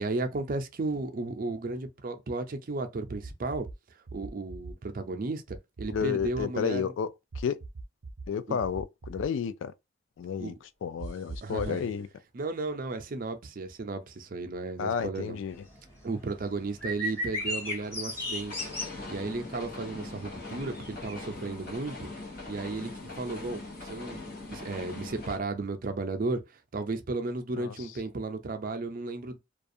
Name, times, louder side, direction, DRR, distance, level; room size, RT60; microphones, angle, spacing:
voice 1, 0.0-3.7 4.1-6.9 8.5-8.6 10.4-10.5 11.4-11.9 12.3-15.4 16.0-18.7 19.1-22.1 22.5-24.2 24.5-26.4 26.7-29.4, right 3 dB, 50° right, 0.5 m, -34 dB
sound 1, 3.1-3.7 4.1-4.7 5.5-6.4 7.3-8.3 8.6-9.3 11.0-11.8, right 3 dB, 90° right, 0.6 m, -41 dB
voice 2, 5.9-7.1 7.4-7.6 8.3-9.7 10.2-10.5 10.8-12.1 14.8-15.6 27.6-27.7, left 7 dB, 85° left, 0.3 m, -31 dB
sound 2, 15.5-21.2, left 1 dB, 15° left, 1.1 m, -36 dB
sound 3, 16.1-25.4, left 2 dB, 55° left, 0.9 m, -42 dB
2.4 x 2.3 x 2.6 m
head